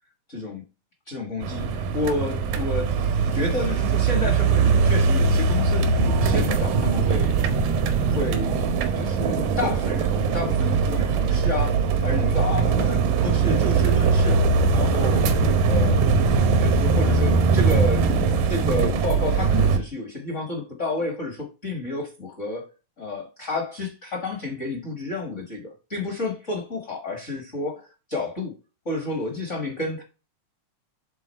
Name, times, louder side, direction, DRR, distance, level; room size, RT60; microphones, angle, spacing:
voice 1, 0.3-0.6 1.1-3.0 3.3-7.4 8.1-14.4 14.7-15.4 15.6-16.0 16.6-18.1 18.4-22.7 23.0-28.5 28.8-30.0, left 2 dB, 45° left, 0.9 m, -30 dB
sound 1, 1.4-19.8, right 5 dB, 85° right, 2.6 m, -21 dB
8.2 x 4.0 x 4.3 m
omnidirectional pair, 3.8 m